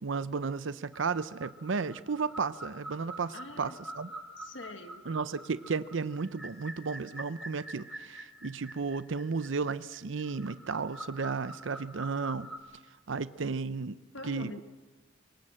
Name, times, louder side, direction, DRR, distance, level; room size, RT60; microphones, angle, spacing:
voice 1, 0.0-4.1 5.1-12.5 13.1-13.9 14.2-14.5, right 4 dB, 80° right, 15 dB, 0.6 m, -33 dB
sound 1, 0.9-12.6, right 1 dB, ahead, 2.5 m, -46 dB
voice 2, 3.3-3.8 4.4-5.1 14.1-14.6, left 2 dB, 75° left, 7 dB, 1.6 m, -44 dB
24.5 x 18.5 x 7.5 m, 1.2 s
head